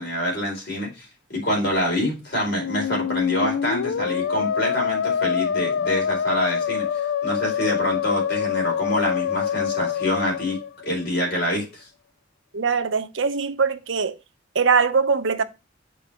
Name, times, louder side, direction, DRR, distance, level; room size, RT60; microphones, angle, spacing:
voice 1, 0.0-6.8 7.2-10.6 10.8-11.8, left 1 dB, 50° left, 4.4 m, -26 dB
Musical instrument, 2.4-11.2, left 8 dB, 75° left, 0.3 m, -25 dB
voice 2, 12.5-14.1 14.5-15.4, right 5 dB, 70° right, 0.7 m, -21 dB
6.9 x 4.7 x 4.3 m
head